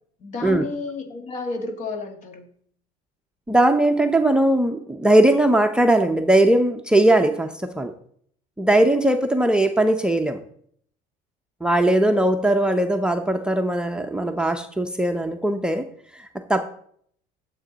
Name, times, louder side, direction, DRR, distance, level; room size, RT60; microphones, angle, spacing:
voice 1, 0.2-2.5, left 3 dB, 45° left, 6 dB, 1.8 m, -31 dB
voice 2, 3.5-7.9 8.6-10.4 11.6-15.8 16.2-16.6, right 1 dB, 5° right, 4 dB, 0.7 m, -19 dB
11.5 x 7.5 x 4.1 m, 0.63 s
cardioid pair, 115°, 17 cm